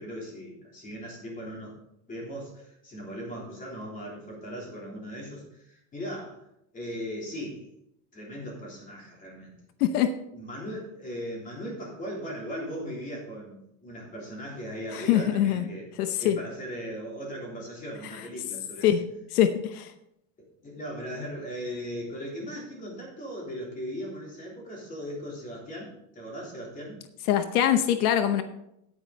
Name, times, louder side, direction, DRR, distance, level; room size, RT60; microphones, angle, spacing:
voice 1, 0.0-1.8 2.1-6.4 6.7-7.6 8.1-9.5 10.3-15.9 16.2-18.9 20.6-27.0, equal, 20° left, -2 dB, 3.4 m, -38 dB
voice 2, 9.8-10.1 14.9-15.7 16.0-16.4 18.8-19.0 19.3-19.9 27.3-28.4, left 10 dB, 85° left, 10 dB, 0.9 m, -23 dB
9.8 x 9.5 x 4.0 m, 0.80 s
supercardioid pair, 160°, 44 cm